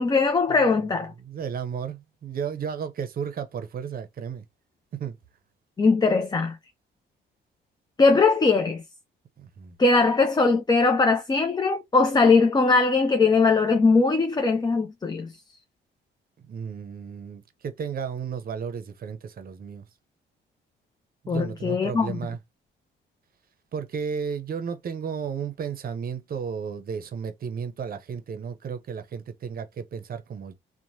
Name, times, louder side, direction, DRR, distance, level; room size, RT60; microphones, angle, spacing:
voice 1, 0.0-1.1 5.8-6.6 8.0-8.8 9.8-15.3 21.3-22.2, left 4 dB, 20° left, 0.4 m, -20 dB
voice 2, 1.2-4.4 4.9-5.2 9.4-9.8 16.5-19.9 21.2-22.4 23.7-30.5, right 7 dB, 50° right, 0.7 m, -33 dB
3.0 x 2.1 x 2.7 m
cardioid pair, 90°, 20 cm